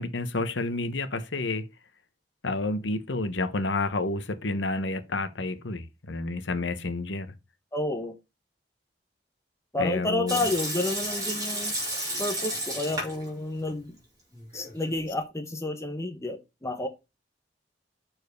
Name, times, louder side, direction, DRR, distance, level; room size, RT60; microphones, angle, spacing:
voice 1, 0.0-1.6 2.4-7.3 9.8-10.5, left 2 dB, 80° left, 1.0 m, -30 dB
voice 2, 7.7-8.2 9.7-11.8 12.2-14.0 14.5-16.9, left 2 dB, 15° left, 0.9 m, -30 dB
Water tap faucet / Sink (filling or washing) / Liquid, 10.3-13.3 13.6-13.7 14.3-14.9, right 1 dB, 20° right, 4.2 m, -32 dB
6.8 x 4.5 x 5.3 m
head